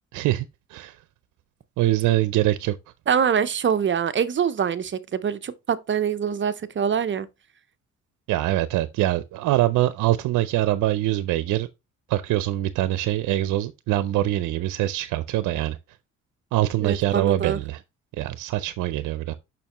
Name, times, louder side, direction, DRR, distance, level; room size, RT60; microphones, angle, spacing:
voice 1, 0.1-1.0 1.8-2.8 8.3-11.7 12.1-15.8 16.5-17.8 18.2-19.3, right 15 dB, 85° right, 0.6 m, -24 dB
voice 2, 3.1-7.3 16.8-17.6, right 7 dB, 40° right, 0.8 m, -24 dB
6.8 x 5.9 x 3.0 m
cardioid pair, 90°, 30 cm